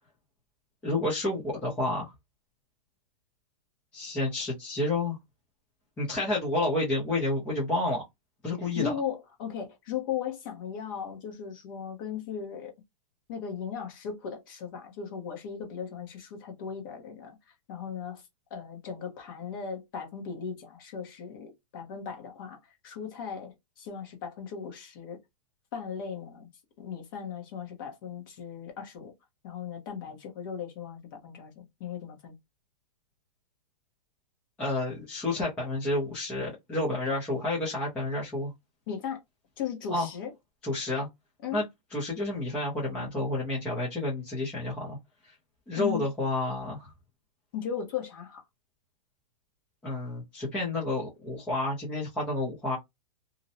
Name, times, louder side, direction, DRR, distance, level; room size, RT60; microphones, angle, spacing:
voice 1, 0.8-2.1 3.9-5.2 6.0-8.0 8.4-8.9 34.6-38.5 39.9-40.1 40.6-41.1 41.5-41.6 41.9-45.0 45.7-46.9 49.8-52.8, left 2 dB, 5° left, 0.4 m, -30 dB
voice 2, 8.8-12.7 13.3-17.3 17.7-18.2 18.5-22.6 22.8-25.2 25.7-26.5 26.8-29.1 29.4-32.3 38.9-39.2 39.6-40.3 41.4-41.6 45.7-46.0 47.5-48.4, left 7 dB, 35° left, 0.8 m, -37 dB
2.5 x 2.0 x 2.6 m
hypercardioid pair, 170°, 20 cm